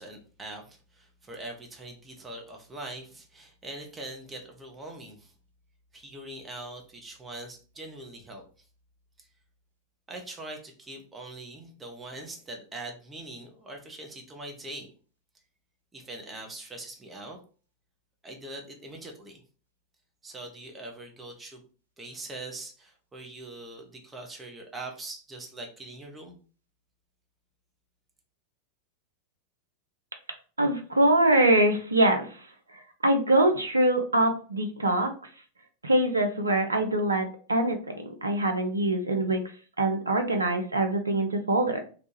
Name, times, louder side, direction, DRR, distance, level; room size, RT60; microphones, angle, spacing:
voice 1, 0.0-5.3 5.9-8.4 9.2-9.3 10.1-14.9 15.9-17.4 18.2-19.4 20.2-21.6 22.0-26.4, right 2 dB, 15° right, 1 dB, 0.7 m, -42 dB
voice 2, 30.6-32.5 33.0-35.1 35.8-39.4 39.8-41.8, right 1 dB, 80° right, 6 dB, 0.5 m, -24 dB
2.9 x 2.1 x 3.0 m, 0.40 s
figure-of-eight pair, 90°, 0 cm